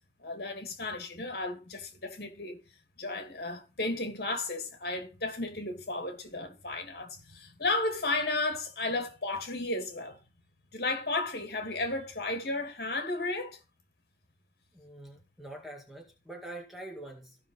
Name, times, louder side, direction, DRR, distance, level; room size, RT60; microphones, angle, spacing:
voice 1, 0.2-2.6 3.0-10.2 10.7-13.6, left 2 dB, 60° left, 2.7 m, -33 dB
voice 2, 14.7-17.4, right 1 dB, ahead, 1.9 m, -45 dB
15.5 x 6.0 x 4.0 m
head